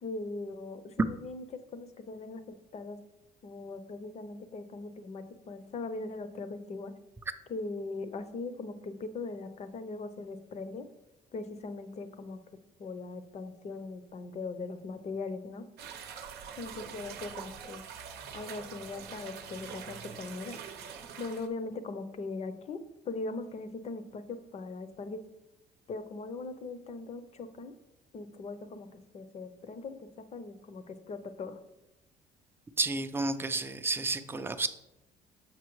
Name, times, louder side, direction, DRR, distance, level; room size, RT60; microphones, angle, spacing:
voice 1, 0.0-3.0 3.4-6.9 7.5-10.9 11.3-12.4 12.8-15.6 16.6-17.8 18.3-20.6 21.2-22.8 23.0-25.2 25.9-27.7 28.1-28.9 29.1-31.6, left 3 dB, 40° left, 10 dB, 0.6 m, -40 dB
sound 1, 15.8-21.5, right 7 dB, 75° right, 0.7 m, -44 dB
voice 2, 32.8-34.7, right 3 dB, 15° right, 9 dB, 0.4 m, -31 dB
7.3 x 5.5 x 3.1 m, 0.91 s
cardioid pair, 110°, 17 cm